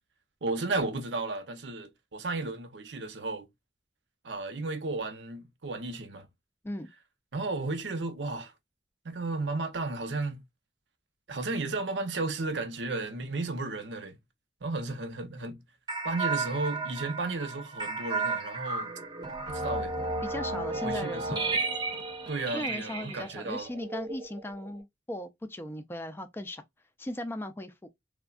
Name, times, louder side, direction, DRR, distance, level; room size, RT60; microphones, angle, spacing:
voice 1, 0.4-3.5 4.2-6.3 7.3-8.5 9.0-10.4 11.3-14.2 14.6-15.6 16.0-18.9 19.5-19.9 20.8-21.6 22.3-23.7, right 3 dB, 90° right, 0.7 m, -33 dB
sound 1, 15.9-24.8, right 3 dB, 25° right, 0.7 m, -33 dB
voice 2, 20.2-21.5 22.5-26.6 27.0-27.9, left 1 dB, 15° left, 0.3 m, -37 dB
3.4 x 2.1 x 2.3 m
head